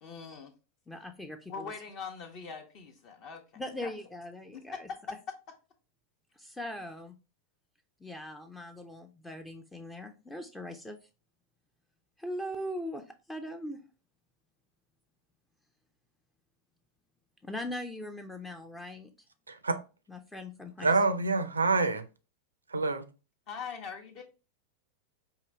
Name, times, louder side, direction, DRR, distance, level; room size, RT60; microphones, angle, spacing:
voice 1, 0.0-0.5 1.5-3.4 3.8-3.9 4.5-4.8 5.1-5.2 23.5-24.2, left 6 dB, 40° left, 0.7 m, -41 dB
voice 2, 0.9-1.7 3.6-4.9 6.4-7.2 8.0-11.0 12.2-13.8 17.4-19.1 20.1-20.9, left 1 dB, 5° left, 0.4 m, -40 dB
voice 3, 19.5-19.8 20.8-22.1 22.7-23.1, right 3 dB, 75° right, 0.4 m, -27 dB
4.8 x 2.7 x 3.2 m
figure-of-eight pair, 90°, 0 cm